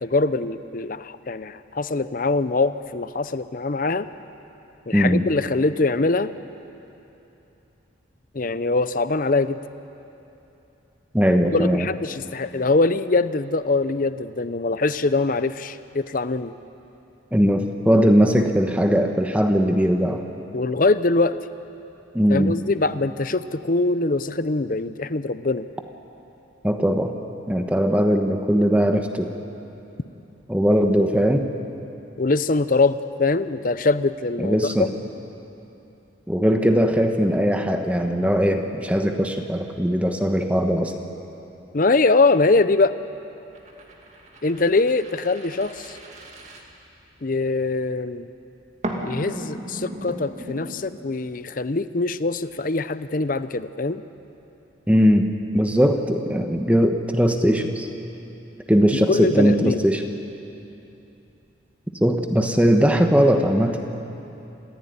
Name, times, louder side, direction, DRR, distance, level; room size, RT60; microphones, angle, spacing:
voice 1, 0.0-4.1 4.9-6.3 8.3-9.6 11.5-16.5 20.5-21.3 22.3-25.6 32.2-34.9 41.7-42.9 44.4-46.0 47.2-48.3 49.0-54.0 59.1-59.8, left 3 dB, 45° left, 13 dB, 0.7 m, -23 dB
voice 2, 4.9-5.2 11.1-11.9 17.3-20.2 22.1-22.5 26.6-27.1 27.5-29.3 30.5-31.5 34.4-34.9 36.3-40.9 54.9-57.9 58.7-60.0 62.0-63.8, equal, 5° right, 5 dB, 1.2 m, -19 dB
sound 1, 43.5-47.3 48.8-50.7, right 1 dB, 40° right, 2.4 m, -36 dB
27.0 x 15.5 x 9.6 m, 2.9 s
head